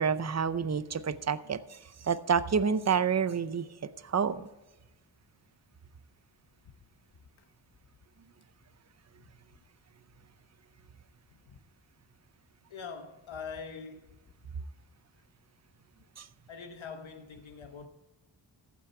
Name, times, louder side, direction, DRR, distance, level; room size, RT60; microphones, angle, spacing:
voice 1, 0.0-1.8 2.0-3.7 4.0-4.4 16.2-16.3, right 6 dB, 35° right, 0.6 m, -28 dB
voice 2, 12.7-14.1 16.5-17.9, left 5 dB, 85° left, 1.1 m, -43 dB
14.5 x 8.5 x 4.4 m
wide cardioid pair, 95°, 46 cm